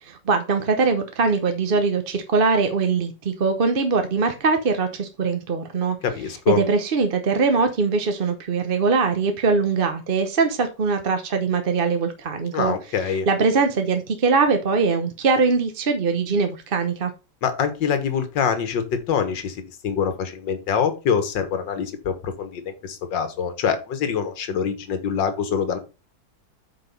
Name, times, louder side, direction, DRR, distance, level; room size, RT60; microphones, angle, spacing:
voice 1, 0.0-6.0 6.5-12.7 13.3-17.1, right 4 dB, 40° right, 6 dB, 0.9 m, -22 dB
voice 2, 6.0-6.6 12.5-13.3 17.4-25.8, left 7 dB, 85° left, 9 dB, 1.9 m, -25 dB
8.2 x 5.0 x 5.4 m, 0.29 s
omnidirectional pair, 1.9 m